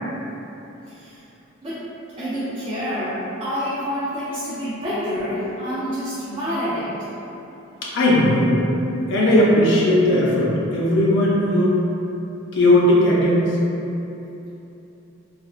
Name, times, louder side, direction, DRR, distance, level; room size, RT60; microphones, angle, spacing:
voice 1, 0.9-1.2 1.6-1.9 2.2-6.9, equal, 25° right, -12 dB, 0.4 m, -27 dB
voice 2, 7.9-8.6 9.1-11.8 12.5-13.4, left 1 dB, 60° left, -5 dB, 0.6 m, -17 dB
3.2 x 2.3 x 2.3 m, 3.0 s
head